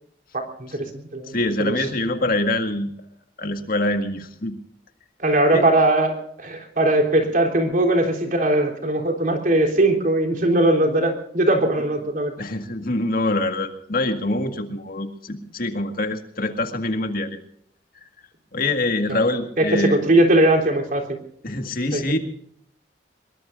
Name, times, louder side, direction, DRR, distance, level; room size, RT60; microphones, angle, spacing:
voice 1, 0.3-1.3 1.6-1.9 5.2-12.3 19.1-19.3 19.6-21.2 21.9-22.2, right 1 dB, 50° right, 2 dB, 3.7 m, -20 dB
voice 2, 1.3-2.9 3.4-4.5 5.5-5.6 12.4-17.3 18.5-20.0 21.4-22.2, left 2 dB, 55° left, 6 dB, 1.9 m, -24 dB
25.0 x 22.0 x 2.6 m, 0.67 s
head